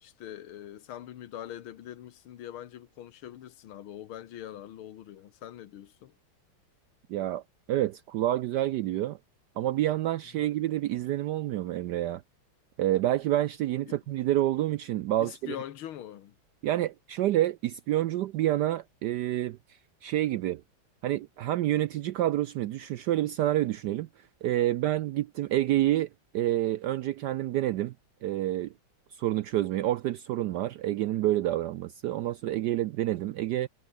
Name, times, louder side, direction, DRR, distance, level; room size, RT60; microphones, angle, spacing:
voice 1, 0.0-6.2 10.3-10.5 13.8-14.0 15.2-16.4, left 11 dB, 80° left, 1.9 m, -43 dB
voice 2, 7.1-7.4 7.7-9.2 9.6-12.2 12.8-15.6 16.6-19.6 20.0-20.6 21.0-26.1 26.3-27.9 28.2-28.7 29.2-33.7, right 14 dB, 75° right, 0.9 m, -28 dB
omnidirectional pair, 2.3 m